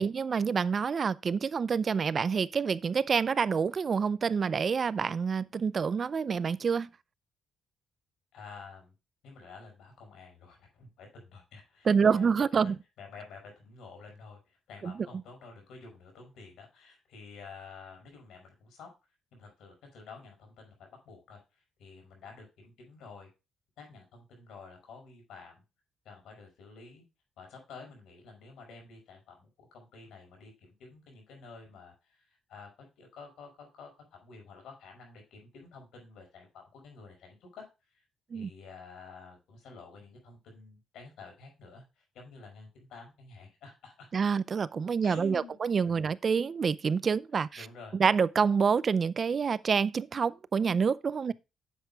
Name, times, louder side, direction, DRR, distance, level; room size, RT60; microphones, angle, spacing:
voice 1, 0.0-6.9 11.9-12.8 14.8-14.9 38.3-38.5 44.1-47.7 47.9-51.3, right 6 dB, 45° right, 0.5 m, -27 dB
voice 2, 8.3-8.9 9.2-12.4 13.0-18.9 19.3-21.4 21.8-23.3 23.8-25.6 26.0-27.0 27.4-37.7 38.3-44.1 45.0-45.6 45.8-46.1 47.5-48.0, left 4 dB, 80° left, 5.8 m, -50 dB
10.0 x 8.1 x 2.4 m
cardioid pair, 90°, 0 cm